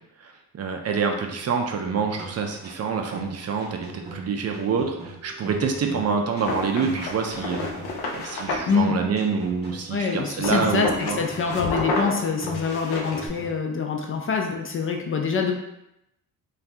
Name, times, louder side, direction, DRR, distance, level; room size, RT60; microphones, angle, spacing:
voice 1, 0.2-7.7 8.1-11.2, right 5 dB, 45° right, 4 dB, 0.4 m, -27 dB
sound 1, 1.9-13.6, right 2 dB, 25° right, 0.8 m, -41 dB
sound 2, 6.4-8.7 10.4-13.3, left 3 dB, 80° left, 0.6 m, -30 dB
voice 2, 9.9-15.5, left 5 dB, 35° left, 2 dB, 0.4 m, -25 dB
2.6 x 2.3 x 3.3 m, 0.84 s
cardioid pair, 95°, 38 cm